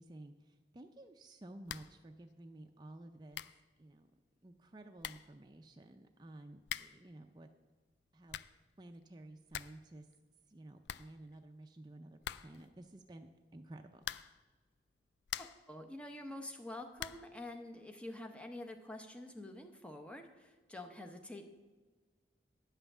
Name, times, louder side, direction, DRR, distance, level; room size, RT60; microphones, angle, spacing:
voice 1, 0.0-3.4 3.8-4.1 4.4-7.5 8.1-8.4 8.8-10.1 10.5-14.1, right 1 dB, 25° right, 5 dB, 0.4 m, -53 dB
sound 1, 1.6-2.0 2.3-2.4 3.0-3.1 3.3-3.7 4.6-4.7 5.0-5.4 6.6-7.1 8.0-8.6 9.0-9.1 9.3-9.9 10.1-10.2 10.5-10.6 10.8-11.6 12.2-12.7 14.0-14.5 15.0-15.7 17.0-17.4, left 11 dB, 80° left, 0.3 m, -45 dB
voice 2, 15.4-21.4, left 1 dB, 5° left, 4 dB, 0.7 m, -47 dB
9.6 x 5.6 x 7.2 m, 1.3 s
head